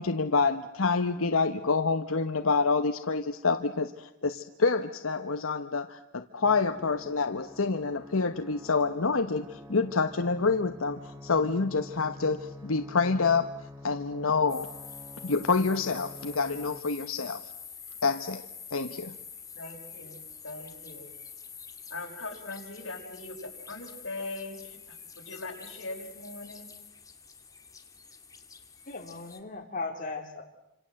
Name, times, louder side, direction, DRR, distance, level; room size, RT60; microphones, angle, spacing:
voice 1, 0.0-13.5 13.8-14.7 15.2-17.4 18.0-18.4 18.7-19.1, left 4 dB, 90° left, 8 dB, 1.1 m, -27 dB
sound 1, 6.4-16.8, left 1 dB, 15° right, 1.6 m, -47 dB
sound 2, 14.5-29.4, left 6 dB, 15° left, 2.1 m, -47 dB
voice 2, 19.6-21.1 21.9-26.7, left 2 dB, 65° left, 2 dB, 5.6 m, -41 dB
voice 3, 28.9-30.4, left 3 dB, 40° left, 1 dB, 3.1 m, -37 dB
29.0 x 26.5 x 7.7 m, 0.87 s
head